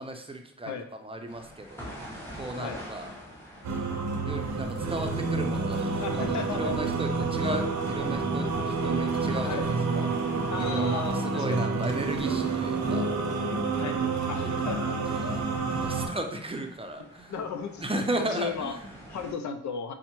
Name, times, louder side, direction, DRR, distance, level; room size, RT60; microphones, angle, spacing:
voice 1, 0.0-0.7 1.0-1.9 2.4-3.1 4.3-8.5 8.8-10.1 10.7-13.1 14.3-14.5 14.9-15.4 15.8-17.3 17.8-18.9, right 1 dB, 20° right, 4 dB, 0.5 m, -35 dB
sound 1, 1.3-19.3, equal, 10° left, 1.2 m, -47 dB
sound 2, 3.6-16.1, right 4 dB, 70° right, 0.7 m, -29 dB
voice 2, 6.0-6.7 7.4-7.6 7.9-8.0 9.4-9.7 10.5-11.6 13.7-14.0 14.3-14.9 15.3-15.4 17.0-17.8 18.2-18.8 19.1-19.9, left 6 dB, 75° left, 8 dB, 0.4 m, -35 dB
5.4 x 2.1 x 2.9 m, 0.67 s
cardioid pair, 55°, 29 cm